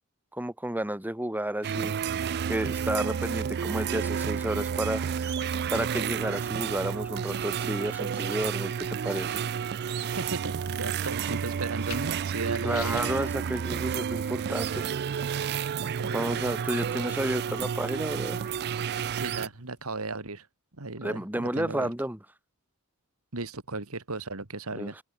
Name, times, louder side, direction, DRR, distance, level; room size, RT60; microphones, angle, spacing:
voice 1, 0.3-2.0 2.5-5.3 5.7-9.4 12.6-15.0 16.1-18.5 21.0-22.2 24.7-24.9, right 1 dB, 10° right, 1.6 m, -31 dB
sound 1, 1.6-19.5, right 7 dB, 45° right, 0.4 m, -31 dB
sound 2, 3.1-20.1, left 6 dB, 80° left, 5.9 m, -52 dB
voice 2, 10.0-13.1 15.8-16.7 19.1-20.5 20.8-21.9 23.3-25.0, right 3 dB, 70° right, 2.3 m, -36 dB
open air
head